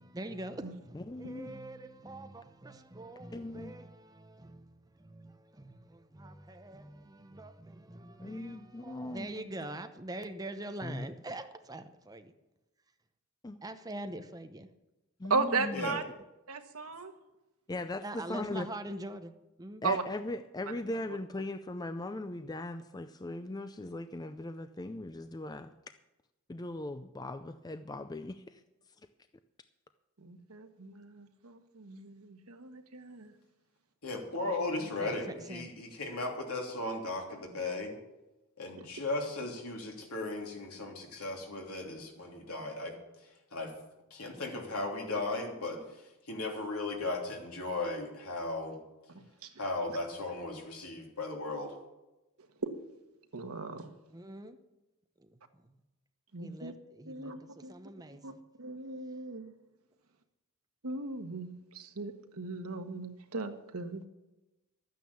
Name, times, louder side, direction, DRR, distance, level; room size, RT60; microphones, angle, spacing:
voice 1, 0.0-12.3 13.6-14.7 18.0-19.3 19.6-20.0 34.8-35.7 54.1-54.6 55.7-55.8 56.4-58.4, right 1 dB, 15° right, 0.8 m, -44 dB
voice 2, 0.9-1.6 3.3-3.7 8.2-9.5 10.8-11.1 13.4-13.6 15.2-16.0 17.7-18.7 19.8-25.7 26.5-28.6, left 2 dB, 15° left, 0.4 m, -39 dB
voice 3, 15.3-16.0 16.5-17.1 19.8-20.0 30.2-33.3 49.4-49.5 52.6-52.7 53.3-53.9 56.3-56.7 57.1-57.7 58.2-58.3 58.6-59.5 60.8-64.1, right 4 dB, 80° right, 1.4 m, -36 dB
voice 4, 34.0-37.9 38.6-42.9 43.2-43.7 44.1-48.8 49.6-51.7, left 2 dB, 80° left, 3.1 m, -36 dB
13.0 x 9.3 x 7.1 m
head